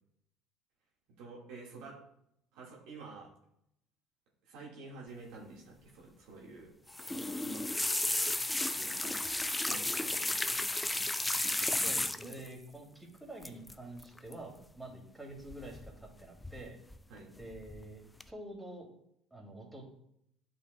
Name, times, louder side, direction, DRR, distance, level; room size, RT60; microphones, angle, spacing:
voice 1, 1.2-2.0 2.5-3.3 4.5-6.7 7.1-7.6 8.7-9.2 9.6-10.6 17.1-17.3, right 3 dB, 70° right, -3 dB, 1.9 m, -49 dB
sound 1, 6.9-12.5 13.4-13.7 14.0-14.3 15.5-16.1 16.4-17.0 17.4-17.8 18.2-18.3, left 2 dB, 10° left, 0.4 m, -33 dB
voice 2, 11.8-16.8 17.4-18.9 19.3-19.9, right 1 dB, 5° right, -1 dB, 2.5 m, -47 dB
8.9 x 5.4 x 2.3 m, 0.74 s
hypercardioid pair, 65°, 0 cm